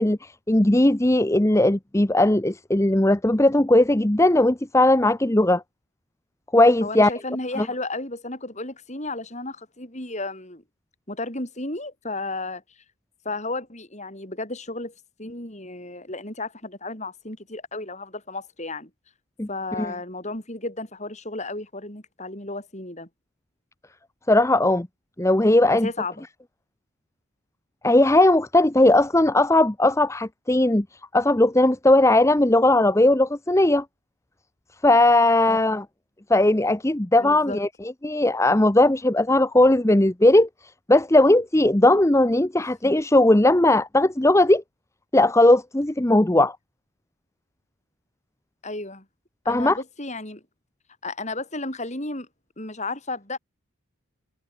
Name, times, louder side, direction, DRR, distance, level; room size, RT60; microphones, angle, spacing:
voice 1, 0.0-5.6 6.5-7.1 7.6-7.7 19.4-19.5 19.8-19.9 24.3-24.9 25.2-25.9 27.8-33.8 34.8-35.8 36.3-44.6 45.1-46.6 49.5-49.8, left 1 dB, 15° left, 0.8 m, -18 dB
voice 2, 6.8-10.6 11.1-12.8 13.2-18.9 19.5-23.1 25.7-26.2 35.5-35.6 37.2-37.6 48.6-49.0 49.4-50.4 51.0-52.3 52.6-53.4, left 2 dB, 35° left, 6.3 m, -33 dB
head